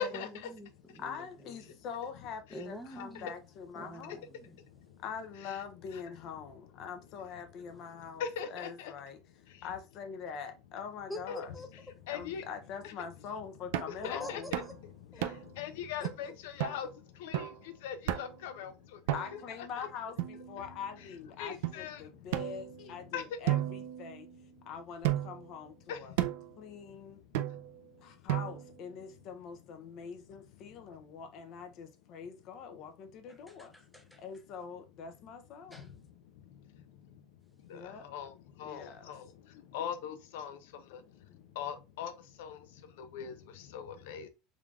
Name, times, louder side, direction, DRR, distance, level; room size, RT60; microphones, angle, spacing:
voice 1, 0.1-1.5 2.5-3.3 3.7-4.5 11.1-11.7 14.2-14.5 15.1-15.3 16.0-16.3 33.5-34.2 35.7-35.9, left 1 dB, ahead, 0.6 m, -46 dB
voice 2, 1.0-4.3 5.0-9.2 9.6-11.5 12.1-14.5 19.1-24.3 24.7-26.1 26.6-27.2 28.0-33.7 34.2-35.9 37.7-38.1 38.6-39.1 41.3-41.5, left 6 dB, 45° left, 0.6 m, -44 dB
voice 3, 8.2-8.9 11.3-11.4 12.1-12.4 12.8-12.9 14.0-14.4 15.6-16.9 17.2-17.5 17.8-18.7 19.3-19.4 19.8-19.9 21.4-22.0 23.1-23.2 25.9-26.0 37.7-37.8 38.1-38.3 38.6-39.2 39.7-40.6 41.6-42.1 42.4-42.6 43.0-43.4 43.7-44.3, left 8 dB, 85° left, 0.6 m, -39 dB
sound 1, 13.7-14.0 14.5-14.8 15.2-15.6 16.0-16.1 16.6-16.8 17.3-17.6 18.1-18.4 19.1-19.5 20.2-20.9 21.6-21.8 22.3-23.0 23.5-24.5 25.0-25.5 26.2-26.5 27.3-27.8 28.3-28.8, right 13 dB, 85° right, 0.4 m, -34 dB
3.7 x 3.3 x 2.4 m
cardioid pair, 160°, 0 cm